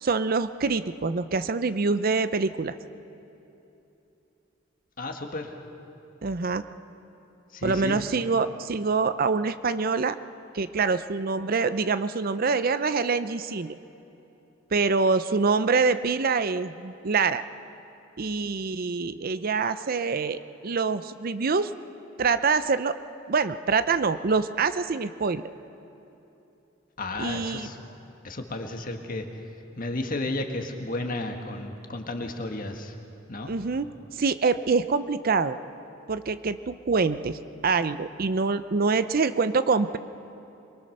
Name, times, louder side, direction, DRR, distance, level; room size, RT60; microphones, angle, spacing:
voice 1, 0.0-2.8 6.2-6.6 7.6-10.2 10.5-13.8 14.7-17.4 18.2-21.7 22.2-23.0 23.3-25.4 27.2-27.7 33.5-35.6 36.1-40.0, right 4 dB, 45° right, 12 dB, 0.6 m, -25 dB
voice 2, 5.0-5.5 7.5-8.0 27.0-27.8 28.2-29.3 29.8-32.9 33.3-33.5, left 2 dB, 45° left, 4 dB, 1.7 m, -33 dB
24.0 x 22.5 x 6.6 m, 2.9 s
head